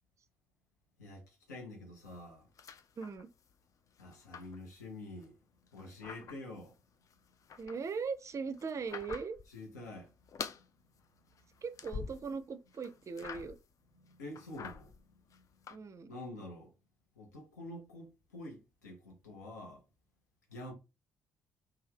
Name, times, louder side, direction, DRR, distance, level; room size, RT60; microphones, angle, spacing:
voice 1, 1.0-2.5 4.0-5.4 5.7-6.7 9.5-10.1 14.0-15.4 16.1-16.7 17.2-19.8 20.5-20.7, left 1 dB, 75° left, 0.8 m, -47 dB
sound 1, 2.1-3.6 3.9-5.3 5.7-6.7 7.1-9.6 9.9-10.7 11.0-12.4 12.7-13.7 14.1-15.8, left 6 dB, 40° left, 0.3 m, -47 dB
voice 2, 3.0-3.3 7.6-9.4 11.6-13.6 15.7-16.1, right 5 dB, 35° right, 0.5 m, -39 dB
2.7 x 2.3 x 3.4 m
figure-of-eight pair, 45°, 9 cm